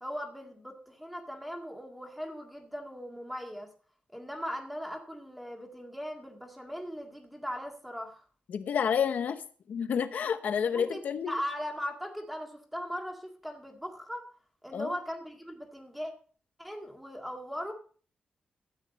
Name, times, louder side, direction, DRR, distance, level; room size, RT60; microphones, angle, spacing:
voice 1, 0.0-3.7 4.1-8.2 10.7-14.3 14.6-16.1 16.6-17.7, equal, ahead, 3 dB, 1.8 m, -39 dB
voice 2, 8.5-9.4 9.7-11.3 14.7-14.9, left 7 dB, 65° left, 10 dB, 0.9 m, -29 dB
13.5 x 9.0 x 4.1 m, 0.42 s
wide cardioid pair, 175°, 3 cm